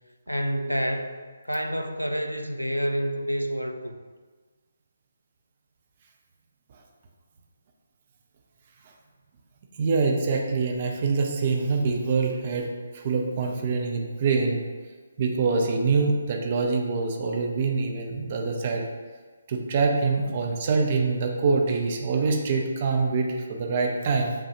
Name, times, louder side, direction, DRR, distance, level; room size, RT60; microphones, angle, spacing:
voice 1, 0.3-1.2 1.5-4.0, equal, 90° left, 6 dB, 0.4 m, -28 dB
voice 2, 9.8-12.7 12.9-14.6 15.2-18.8 19.5-24.3, right 4 dB, 35° right, 1 dB, 0.6 m, -25 dB
7.2 x 2.4 x 2.8 m, 1.4 s
figure-of-eight pair, 145°, 0 cm